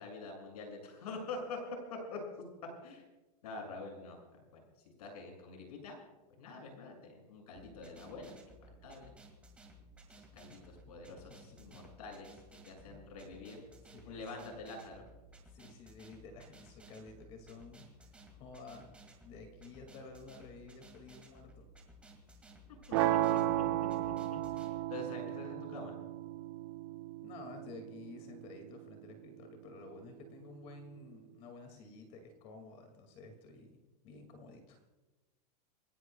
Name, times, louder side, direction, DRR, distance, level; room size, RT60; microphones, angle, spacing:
voice 1, 0.0-1.6 1.9-2.2 2.8-3.0 3.4-4.6 5.0-5.9 6.4-8.3 8.6-9.1 10.1-13.6 14.0-15.1 22.9-26.0, left 3 dB, 65° left, 2 dB, 7.0 m, -46 dB
sound 1, 7.6-24.7, right 1 dB, 5° right, 1.9 m, -57 dB
voice 2, 12.9-13.6 13.9-14.2 15.5-17.9 18.3-18.9 19.2-21.7 27.2-33.8 34.0-34.8, left 3 dB, 30° left, 5 dB, 2.3 m, -52 dB
sound 2, 22.9-29.0, right 14 dB, 40° right, 1.0 m, -34 dB
28.0 x 18.0 x 2.3 m, 1.1 s
supercardioid pair, 175°, 21 cm